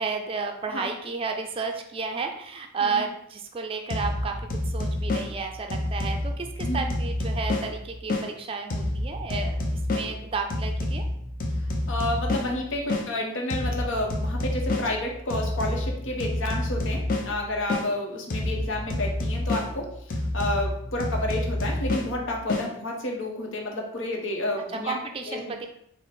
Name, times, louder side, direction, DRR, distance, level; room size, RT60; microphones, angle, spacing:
voice 1, 0.0-9.6 9.9-11.0 24.8-25.8, right 4 dB, 30° right, 4 dB, 0.4 m, -32 dB
sound 1, 3.9-8.3 8.7-13.1 13.5-17.9 18.3-22.7, left 1 dB, 45° left, 0.6 m, -29 dB
voice 2, 11.9-24.9 25.2-25.4, left 1 dB, 75° left, 0 dB, 0.9 m, -30 dB
4.4 x 2.1 x 4.2 m, 0.72 s
head